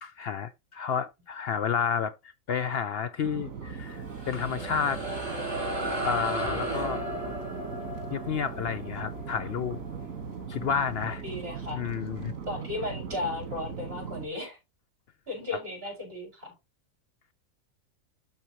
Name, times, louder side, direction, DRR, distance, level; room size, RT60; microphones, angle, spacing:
voice 1, 0.0-2.1 2.5-5.0 6.0-7.0 8.1-9.8 10.5-11.2 11.7-12.3 15.5-15.6, left 7 dB, 60° left, 0.7 m, -30 dB
sound 1, 3.2-14.3, right 6 dB, 80° right, 1.9 m, -39 dB
sound 2, 3.9-10.7, right 1 dB, 20° right, 4.2 m, -35 dB
voice 2, 11.0-11.8 12.5-14.6 15.3-16.5, left 2 dB, 45° right, 6.0 m, -35 dB
12.5 x 4.4 x 2.9 m
omnidirectional pair, 1.4 m